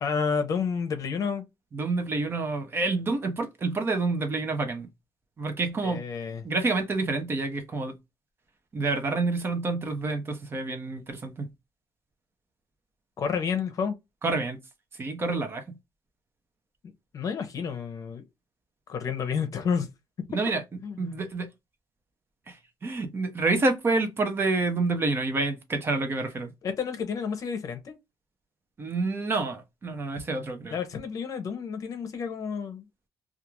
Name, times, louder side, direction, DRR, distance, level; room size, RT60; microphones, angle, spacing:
voice 1, 0.0-1.4 5.8-6.5 13.2-14.0 17.1-18.2 18.9-19.9 20.8-21.2 26.6-28.0 30.7-32.8, left 6 dB, 45° left, 0.7 m, -30 dB
voice 2, 1.7-4.9 5.4-6.0 6.4-7.9 8.7-11.5 14.2-14.6 14.9-15.6 20.3-20.6 21.0-21.5 22.5-22.6 22.8-26.5 28.8-30.8, right 3 dB, 30° right, 0.6 m, -28 dB
2.4 x 2.3 x 3.0 m
cardioid pair, 135°, 8 cm